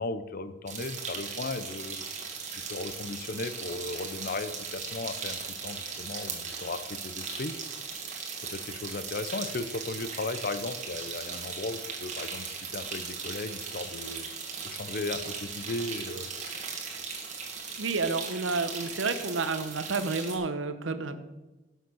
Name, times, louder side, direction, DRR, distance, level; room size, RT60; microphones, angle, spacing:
voice 1, 0.0-2.0 2.7-7.5 8.5-14.2 14.6-16.3, left 3 dB, 50° left, 12 dB, 0.6 m, -36 dB
sound 1, 0.7-20.4, right 5 dB, 40° right, 1.9 m, -38 dB
voice 2, 17.8-21.2, right 4 dB, 80° right, 11 dB, 0.9 m, -30 dB
11.5 x 6.5 x 6.3 m, 1.1 s
head